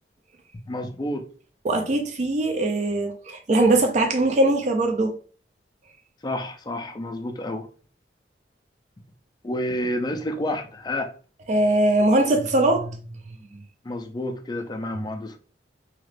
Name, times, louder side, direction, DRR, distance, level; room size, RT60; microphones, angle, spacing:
voice 1, 0.7-1.3 6.2-7.7 9.4-11.1 13.8-15.4, left 1 dB, 25° left, 0.4 m, -29 dB
voice 2, 1.6-5.2 11.5-13.0, right 2 dB, 40° right, 0.4 m, -21 dB
2.8 x 2.4 x 3.2 m
head